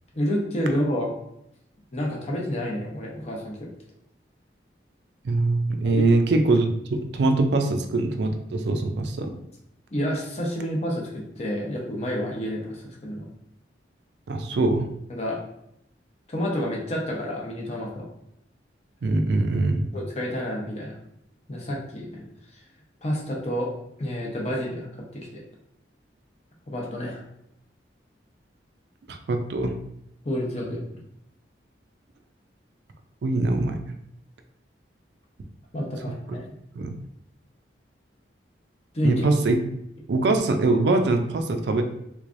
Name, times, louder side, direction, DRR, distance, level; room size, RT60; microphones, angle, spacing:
voice 1, 0.1-1.1 1.9-3.7 5.8-6.0 9.9-13.3 15.1-15.4 16.3-18.1 19.9-21.0 21.5-22.3 23.0-23.7 24.0-25.4 26.7-27.2 30.2-30.8 35.7-36.4 38.9-39.2, equal, 35° left, -2 dB, 0.8 m, -29 dB
voice 2, 5.2-9.3 14.3-14.9 19.0-19.9 29.1-29.7 33.2-33.8 36.3-36.4 36.7-36.9 39.0-39.6 40.1-41.8, right 2 dB, 65° right, 6 dB, 0.4 m, -23 dB
3.4 x 3.2 x 2.5 m, 0.77 s
head